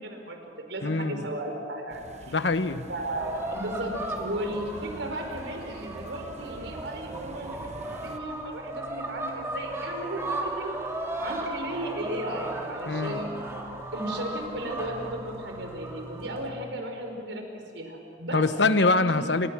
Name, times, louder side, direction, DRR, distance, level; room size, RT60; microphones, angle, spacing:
voice 1, 0.0-2.0 2.3-2.4 2.9-10.8 11.2-13.3 13.9-17.4 17.7-18.4 18.8-19.3, right 1 dB, 90° right, 3 dB, 5.0 m, -35 dB
voice 2, 0.8-1.2 2.3-2.9 12.9-13.2 18.3-19.5, left 3 dB, 75° left, 11 dB, 1.2 m, -24 dB
sound 1, 1.9-8.2, right 2 dB, 40° right, 0.9 m, -45 dB
sound 2, 3.2-16.5, right 1 dB, 15° right, 2.7 m, -36 dB
30.0 x 26.5 x 6.3 m, 2.5 s
head